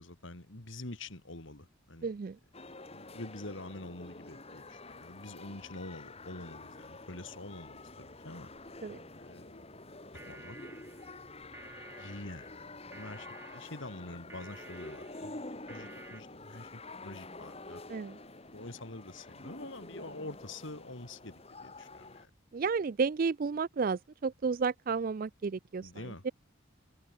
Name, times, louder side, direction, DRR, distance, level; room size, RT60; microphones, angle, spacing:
voice 1, 0.0-2.1 2.9-8.5 9.1-9.7 10.1-10.6 12.0-12.7 12.9-15.4 15.7-17.8 18.5-21.3 21.6-22.3 25.8-26.2, left 2 dB, 65° left, 2.7 m, -46 dB
voice 2, 2.0-2.4 8.8-9.0 17.9-18.2 22.5-25.9 26.2-26.3, right 5 dB, 40° right, 0.4 m, -32 dB
sound 1, 2.5-22.3, left 2 dB, 30° left, 2.4 m, -48 dB
sound 2, 5.5-13.3, left 1 dB, 85° left, 6.1 m, -65 dB
sound 3, 9.9-16.2, right 2 dB, 10° right, 3.9 m, -52 dB
head